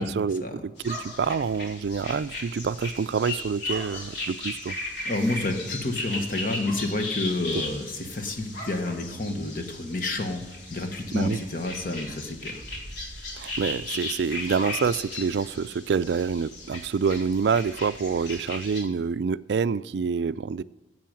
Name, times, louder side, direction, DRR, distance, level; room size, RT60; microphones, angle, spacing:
voice 1, 0.0-4.8 11.1-11.4 13.4-20.6, right 5 dB, 65° right, 0.3 m, -27 dB
sound 1, 0.8-18.8, left 2 dB, 65° left, 2.5 m, -36 dB
voice 2, 5.0-12.6, left 2 dB, 45° left, 1.3 m, -29 dB
10.5 x 7.8 x 7.6 m
head